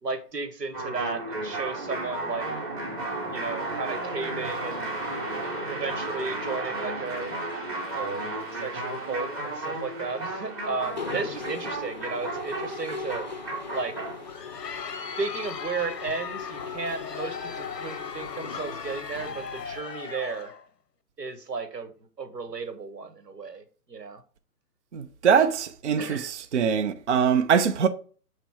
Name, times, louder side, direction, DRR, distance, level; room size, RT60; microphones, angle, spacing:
voice 1, 0.0-2.5 3.3-4.9 5.7-7.3 7.9-8.3 8.5-13.3 13.7-14.0 15.2-20.5 21.2-21.9 22.2-24.2 26.0-26.3, right 4 dB, 90° right, 1.2 m, -34 dB
sound 1, 0.7-14.3, right 2 dB, 15° right, 0.9 m, -33 dB
Mechanisms, 10.8-19.8, left 5 dB, 30° left, 0.5 m, -40 dB
Crowd, 14.1-20.6, left 6 dB, 85° left, 0.9 m, -38 dB
voice 2, 24.9-27.9, right 7 dB, 50° right, 0.5 m, -23 dB
6.6 x 3.1 x 4.7 m
figure-of-eight pair, 145°, 47 cm